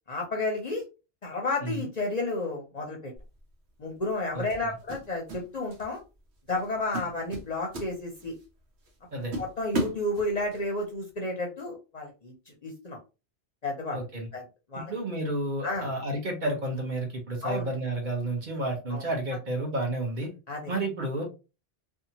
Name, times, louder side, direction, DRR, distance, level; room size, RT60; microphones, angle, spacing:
voice 1, 0.1-0.8 1.2-3.1 3.8-6.0 6.5-8.3 9.4-12.3 12.6-13.0 13.6-14.0 14.3-14.4 14.7-14.9 15.6-15.9 17.4-17.7 18.9-19.1 20.5-20.7, left 2 dB, 45° left, 0 dB, 0.6 m, -31 dB
sound 1, 3.2-3.4 4.5-5.4 5.7-6.0 6.5-6.6 6.9-8.4 8.9-9.0 9.3-10.6, right 1 dB, 85° right, 1.1 m, -35 dB
voice 2, 4.3-4.7 9.1-9.4 13.9-14.3 14.7-20.3 20.7-21.2, right 1 dB, 50° right, 1 dB, 1.0 m, -31 dB
2.8 x 2.3 x 2.7 m, 0.30 s
omnidirectional pair, 1.1 m